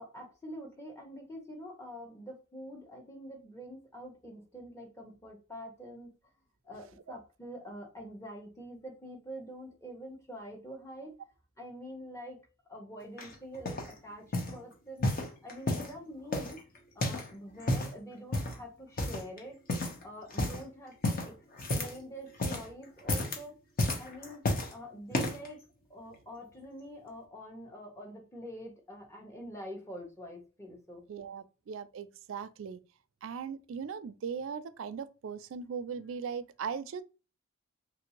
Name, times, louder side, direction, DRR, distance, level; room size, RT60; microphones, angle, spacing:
voice 1, 0.0-6.1 6.6-11.2 11.6-12.4 12.7-15.1 15.4-16.6 16.9-21.4 21.7-23.6 24.0-25.6 25.9-31.1, equal, 15° left, 0.8 m, -46 dB
sound 1, 13.2-13.9 14.3-14.6 15.0-15.9 16.3-17.3 17.6-18.0 18.3-18.6 19.0-19.4 19.7-20.0 20.3-20.6 21.0-22.0 22.3-22.7 23.0-23.4 23.8-24.7 25.1-25.5 26.1-26.2, left 1 dB, 45° left, 0.8 m, -32 dB
voice 2, 31.1-32.8 33.2-37.0, right 6 dB, 65° right, 0.3 m, -39 dB
3.1 x 2.6 x 2.8 m
head